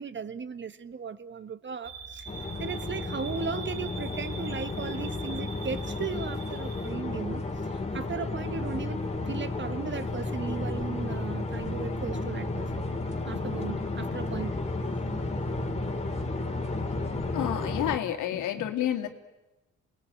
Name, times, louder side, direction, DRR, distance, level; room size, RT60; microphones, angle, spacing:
voice 1, 0.0-2.3 2.6-12.9 13.2-14.6, right 5 dB, 40° right, 1.3 m, -36 dB
sound 1, 1.8-6.9, right 5 dB, 55° right, 6.3 m, -43 dB
sound 2, 2.3-18.0, left 2 dB, 20° left, 3.2 m, -32 dB
voice 2, 17.3-19.1, left 11 dB, 85° left, 2.5 m, -29 dB
28.5 x 19.5 x 9.0 m
cardioid pair, 90°, 30 cm